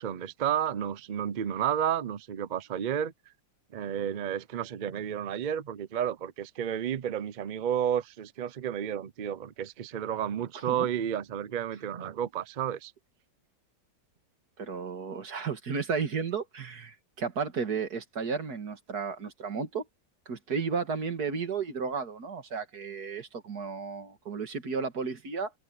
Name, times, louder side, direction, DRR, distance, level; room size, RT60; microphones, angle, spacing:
voice 1, 0.0-3.1 3.7-12.9, right 9 dB, 85° right, 0.4 m, -31 dB
voice 2, 14.6-19.8 20.3-25.5, right 5 dB, 65° right, 2.5 m, -33 dB
omnidirectional pair, 1.8 m